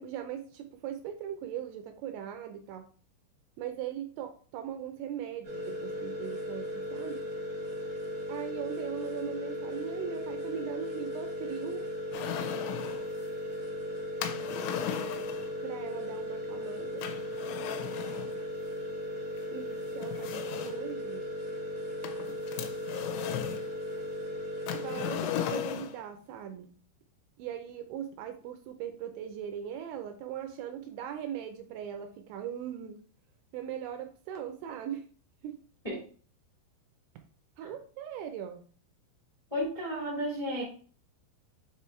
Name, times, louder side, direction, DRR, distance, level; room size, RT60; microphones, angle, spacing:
voice 1, 0.0-2.8 3.6-7.2 8.3-11.8 15.6-17.1 19.5-20.3 20.6-21.3 24.7-26.7 27.4-33.0 33.5-35.0 35.4-35.6 37.6-38.6, right 9 dB, 80° right, 6 dB, 2.8 m, -39 dB
sound 1, 5.4-25.2, equal, 40° right, 1.2 m, -37 dB
sound 2, 12.1-13.1 14.2-15.5 17.0-18.3 19.4-19.5 20.0-20.9 22.0-23.7 24.7-26.0, left 10 dB, 80° left, 2.9 m, -36 dB
voice 2, 39.5-40.6, equal, 55° left, -5 dB, 0.3 m, -33 dB
7.4 x 3.4 x 4.4 m, 0.42 s
omnidirectional pair, 5.6 m